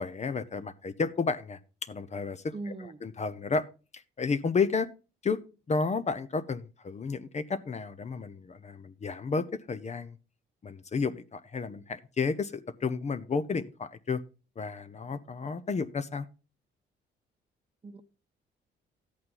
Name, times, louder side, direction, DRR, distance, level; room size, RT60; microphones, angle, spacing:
voice 1, 0.0-3.6 3.9-4.9 5.2-5.4 5.7-10.2 10.6-14.2 14.6-16.3, left 4 dB, 35° left, 0.8 m, -32 dB
voice 2, 2.5-3.0 17.8-18.0, right 2 dB, 30° right, 0.9 m, -39 dB
12.5 x 8.6 x 3.9 m
cardioid pair, 90°, 20 cm